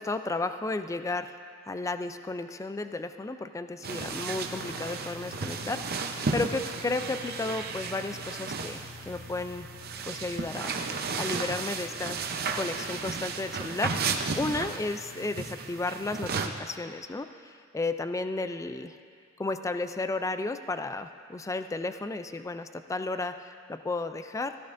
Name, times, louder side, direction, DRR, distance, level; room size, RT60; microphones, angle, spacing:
voice 1, 0.0-1.4 1.7-9.7 10.1-10.9 11.2-19.0 19.4-24.5, left 2 dB, 15° left, 9 dB, 0.3 m, -33 dB
sound 1, 3.8-16.5, right 4 dB, 50° right, 0.6 m, -34 dB
sound 2, 4.3-14.9, equal, 55° left, 2.4 m, -59 dB
16.5 x 14.0 x 2.5 m, 2.2 s
head